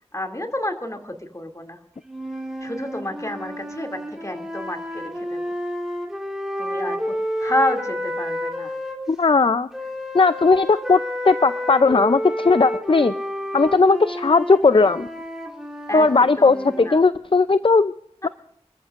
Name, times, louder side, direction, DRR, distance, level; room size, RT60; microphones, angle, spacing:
voice 1, 0.1-1.8 2.6-5.4 6.6-7.0 7.4-8.8 15.9-17.0 18.2-18.3, left 1 dB, 25° left, 4 dB, 2.5 m, -29 dB
sound 1, 2.1-9.0 9.7-16.9, equal, 5° right, 3.4 m, -30 dB
voice 2, 9.1-9.7 10.1-11.0 11.3-13.1 13.5-15.1 15.9-17.9 18.2-18.3, left 4 dB, 50° left, 13 dB, 0.5 m, -17 dB
29.0 x 14.0 x 2.5 m, 0.75 s
wide cardioid pair, 40°, 12 cm